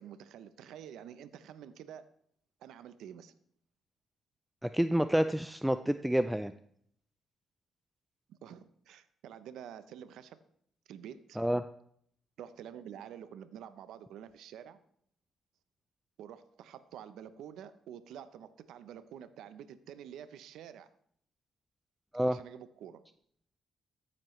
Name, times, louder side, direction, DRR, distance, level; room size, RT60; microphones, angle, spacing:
voice 1, 0.0-2.1 2.6-3.3 8.3-10.4 10.9-11.4 12.4-14.8 16.2-20.9 22.3-23.0, right 9 dB, 80° right, 13 dB, 0.6 m, -48 dB
voice 2, 4.6-6.5 11.4-11.6 22.1-22.4, equal, 5° right, 10 dB, 0.4 m, -28 dB
13.5 x 9.4 x 3.1 m, 0.65 s
cardioid pair, 90°, 0 cm